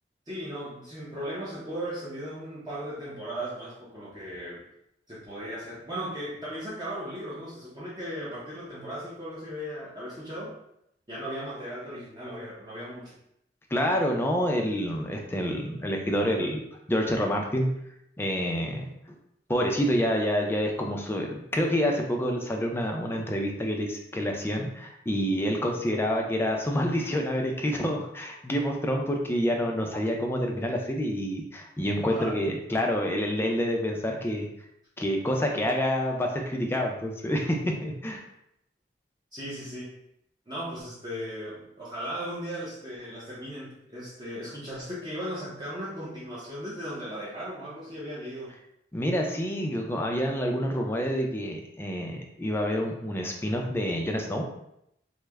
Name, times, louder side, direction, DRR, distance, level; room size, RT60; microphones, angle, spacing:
voice 1, 0.3-4.6 5.1-10.5 11.1-13.1 32.1-32.3 39.3-39.9 40.5-48.5, equal, 25° right, -8 dB, 0.7 m, -37 dB
voice 2, 13.7-16.6 16.9-17.7 18.2-18.9 19.5-34.5 35.0-38.2 48.9-54.5, equal, 15° left, 1 dB, 0.4 m, -28 dB
3.2 x 2.0 x 3.4 m, 0.77 s
head